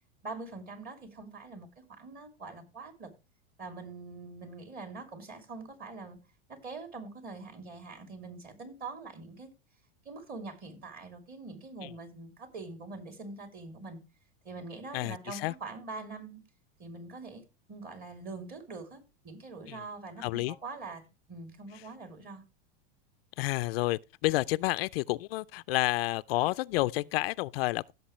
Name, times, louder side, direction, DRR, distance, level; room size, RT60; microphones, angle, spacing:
voice 1, 0.2-3.1 3.6-6.2 6.5-9.5 10.0-14.0 14.4-16.4 16.8-22.4, right 3 dB, 30° right, 2.9 m, -44 dB
voice 2, 14.9-15.5 19.7-19.8 20.2-20.6 23.4-27.9, left 19 dB, 65° left, 0.5 m, -30 dB
16.0 x 6.7 x 3.1 m
supercardioid pair, 135°, 31 cm